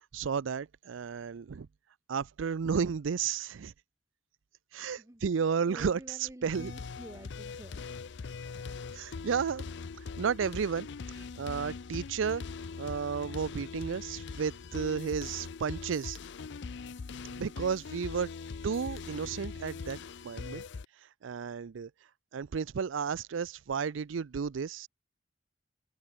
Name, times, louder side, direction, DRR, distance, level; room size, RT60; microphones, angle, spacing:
voice 1, 0.1-1.7 2.1-3.7 4.7-6.0 6.4-6.7 8.9-9.7 10.2-12.4 12.8-16.2 17.4-18.3 18.6-20.0 20.2-20.6 21.2-21.9 22.3-24.9, right 6 dB, 85° right, 0.5 m, -32 dB
voice 2, 4.7-7.8, right 1 dB, 15° right, 1.2 m, -50 dB
sound 1, 6.5-20.9, left 4 dB, 65° left, 0.5 m, -42 dB
open air
head